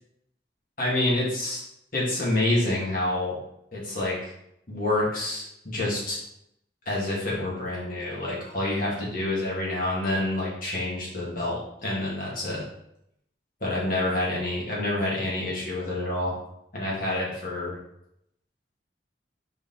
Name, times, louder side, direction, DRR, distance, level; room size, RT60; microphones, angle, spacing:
voice 1, 0.8-1.6 1.9-3.4 3.7-4.3 4.7-6.2 6.9-12.6 13.6-16.3 16.7-17.8, left 1 dB, 50° left, -5 dB, 2.6 m, -27 dB
5.2 x 5.0 x 4.3 m, 0.76 s
head